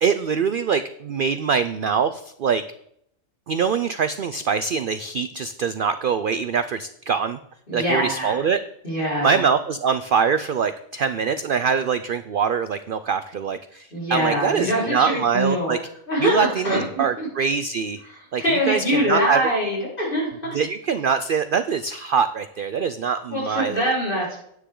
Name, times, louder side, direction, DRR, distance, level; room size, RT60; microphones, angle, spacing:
voice 1, 0.0-2.6 3.5-7.4 7.7-8.6 9.2-15.8 16.2-18.0 18.3-19.4 20.5-23.9, right 6 dB, 70° right, 12 dB, 0.5 m, -23 dB
voice 2, 7.7-8.4 8.8-9.4 13.9-15.8 16.1-16.8 17.2-17.3 18.1-20.6 23.3-24.4, equal, 40° left, -5 dB, 4.7 m, -24 dB
10.0 x 9.2 x 3.7 m, 0.72 s
omnidirectional pair, 1.4 m